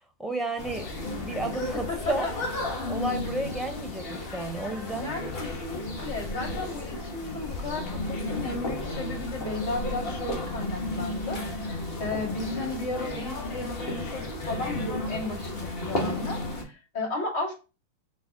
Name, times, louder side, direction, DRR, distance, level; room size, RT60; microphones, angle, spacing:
voice 1, 0.2-0.9 1.2-2.3 2.9-5.1, right 2 dB, ahead, 4 dB, 0.7 m, -32 dB
sound 1, 0.6-16.6, left 2 dB, 45° left, 1.2 m, -33 dB
voice 2, 1.7-2.3 5.0-17.5, left 2 dB, 65° left, 0 dB, 1.8 m, -34 dB
4.0 x 2.1 x 3.5 m, 0.31 s
hypercardioid pair, 115°, 0 cm